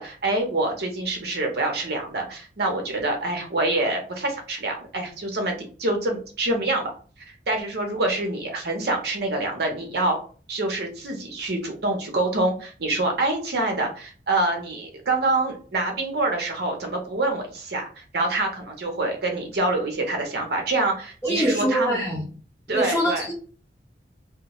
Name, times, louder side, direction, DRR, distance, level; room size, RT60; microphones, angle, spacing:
voice 1, 0.0-6.9 7.5-10.2 10.5-22.0 22.7-23.3, right 2 dB, 60° right, 3 dB, 0.7 m, -26 dB
voice 2, 21.2-22.2 22.7-23.3, right 1 dB, 15° left, -5 dB, 1.0 m, -24 dB
2.2 x 2.2 x 2.9 m, 0.39 s
head